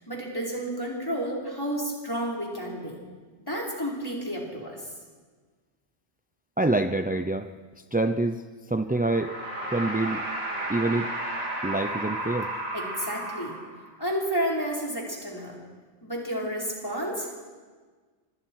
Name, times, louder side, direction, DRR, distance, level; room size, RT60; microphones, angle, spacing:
voice 1, 0.0-3.0 3.5-4.8 12.7-13.6 14.0-15.6 16.0-17.5, equal, 20° left, -3 dB, 4.8 m, -31 dB
voice 2, 6.6-7.5 7.9-9.3 9.7-10.2 10.7-11.1 11.6-12.5, right 2 dB, 10° right, 8 dB, 0.4 m, -26 dB
sound 1, 8.9-14.0, right 1 dB, 65° right, 3.3 m, -33 dB
26.5 x 25.0 x 4.8 m, 1.4 s
omnidirectional pair, 1.1 m